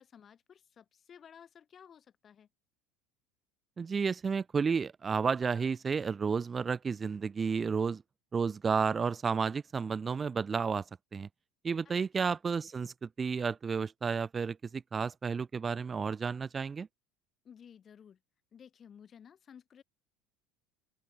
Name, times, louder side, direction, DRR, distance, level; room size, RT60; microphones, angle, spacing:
voice 1, 0.0-2.5 11.8-11.9 17.4-18.2 18.5-19.8, left 8 dB, 25° left, 3.4 m, -55 dB
voice 2, 3.8-8.0 8.3-10.8 11.1-11.3 11.6-16.9, right 5 dB, 15° right, 0.4 m, -32 dB
open air
cardioid pair, 170°, 0 cm